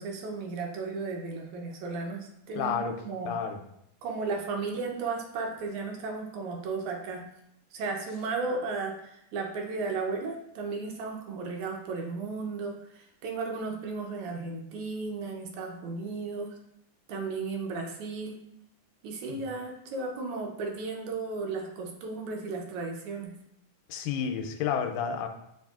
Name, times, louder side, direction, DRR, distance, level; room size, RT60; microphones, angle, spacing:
voice 1, 0.0-3.4 4.0-7.3 7.7-16.6 17.1-18.4 19.0-23.4, right 4 dB, 75° right, 2 dB, 1.9 m, -35 dB
voice 2, 2.6-3.0 3.3-3.6 19.3-19.4 23.9-25.3, left 7 dB, 85° left, 5 dB, 2.1 m, -30 dB
7.0 x 3.1 x 2.4 m, 0.76 s
omnidirectional pair, 3.7 m